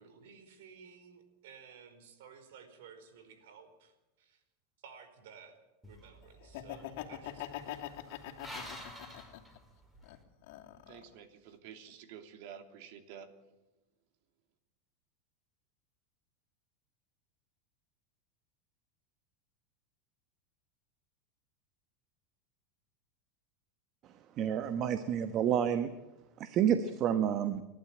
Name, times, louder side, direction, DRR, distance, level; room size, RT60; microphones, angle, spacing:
voice 1, 0.0-4.4 4.8-5.6 5.8-7.9, right 6 dB, 75° right, 8 dB, 4.9 m, -55 dB
sound 1, 5.8-10.2, equal, 5° right, 4.7 m, -50 dB
Laughter, 6.4-9.6 10.0-11.1, left 13 dB, 65° left, 2.7 m, -43 dB
voice 2, 10.9-13.3, right 8 dB, 60° right, 7 dB, 2.9 m, -50 dB
voice 3, 24.4-25.9 26.4-27.6, right 9 dB, 40° right, 10 dB, 1.2 m, -29 dB
29.0 x 12.0 x 8.9 m, 1.1 s
supercardioid pair, 140°, 0 cm